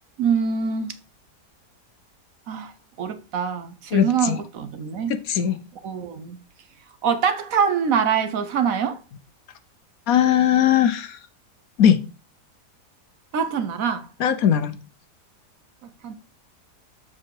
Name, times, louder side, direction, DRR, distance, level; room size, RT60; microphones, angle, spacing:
voice 1, 0.2-1.0 2.5-5.1 5.8-6.4 7.0-9.0 13.3-14.1 16.0-16.1, right 6 dB, 60° right, 1.1 m, -24 dB
voice 2, 3.9-4.4 5.3-5.6 10.1-11.2 11.8-12.0 14.2-14.8, left 9 dB, 65° left, 1.1 m, -19 dB
7.4 x 5.7 x 4.6 m
omnidirectional pair, 1.8 m